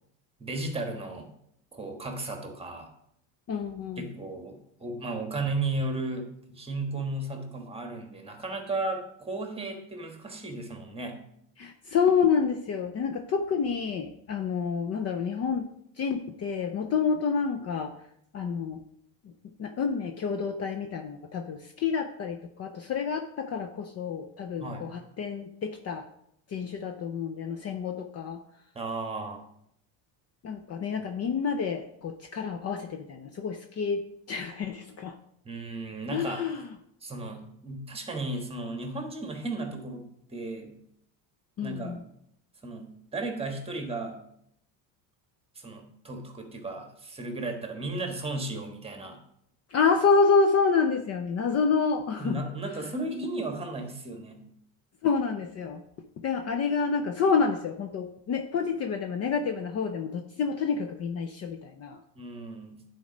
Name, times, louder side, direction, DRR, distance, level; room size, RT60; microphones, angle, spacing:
voice 1, 0.4-1.3 1.7-2.9 4.0-11.2 24.6-24.9 28.7-29.4 35.4-36.4 37.0-40.8 41.6-42.0 42.6-44.2 45.5-49.2 52.2-54.4 62.1-62.8, right 2 dB, 15° right, 4 dB, 1.4 m, -35 dB
voice 2, 3.5-4.1 11.6-15.7 16.0-18.0 18.3-18.8 19.2-19.3 19.6-26.1 26.5-28.4 30.4-34.0 34.3-35.2 36.1-36.7 41.6-42.0 49.7-52.4 55.0-55.8 56.2-62.0, left 5 dB, 35° left, 6 dB, 0.6 m, -28 dB
9.9 x 4.3 x 5.1 m, 0.72 s
supercardioid pair, 115°, 43 cm